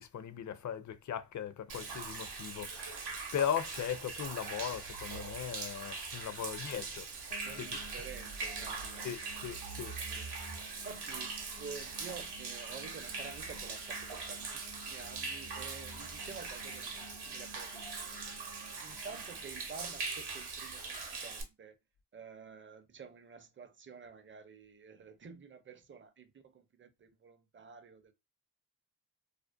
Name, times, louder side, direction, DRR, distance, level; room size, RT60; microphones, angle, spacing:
voice 1, 0.0-7.8 9.0-10.0 18.9-19.0, left 9 dB, 45° left, 0.5 m, -38 dB
Human voice / Rain / Stream, 1.7-21.4, right 4 dB, 70° right, 0.8 m, -42 dB
sound 1, 7.3-20.2, left 1 dB, 80° left, 0.8 m, -56 dB
voice 2, 7.4-9.1 10.1-10.3 10.7-18.2 18.8-21.7 22.1-28.1, right 5 dB, 30° right, 0.5 m, -50 dB
2.5 x 2.1 x 2.4 m
supercardioid pair, 40°, 40 cm